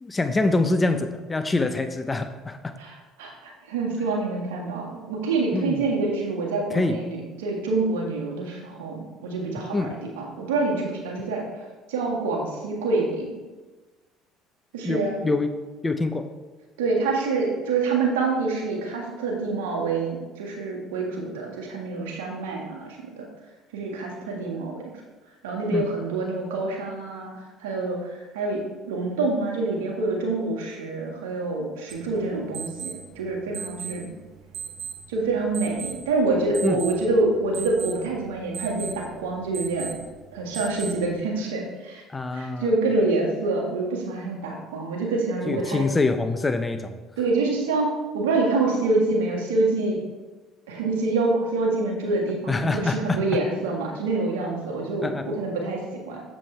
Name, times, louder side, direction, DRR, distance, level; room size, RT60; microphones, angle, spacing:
voice 1, 0.0-2.7 5.5-5.8 6.7-7.0 9.7-9.9 14.8-15.5 15.8-16.3 25.7-25.9 36.6-36.8 42.1-42.7 45.5-46.9 52.5-53.2 55.0-55.4, left 3 dB, 20° left, 8 dB, 0.8 m, -25 dB
voice 2, 2.8-11.5 11.9-13.4 14.7-15.1 16.8-23.3 23.7-24.9 25.4-27.3 27.6-34.1 35.1-39.9 40.3-42.0 42.3-45.9 47.2-50.0 50.7-56.2, right 3 dB, 85° right, -1 dB, 1.7 m, -26 dB
sound 1, 31.9-41.2, right 7 dB, 65° right, 1.0 m, -39 dB
7.4 x 7.3 x 3.3 m, 1.2 s
hypercardioid pair, 65°, 0 cm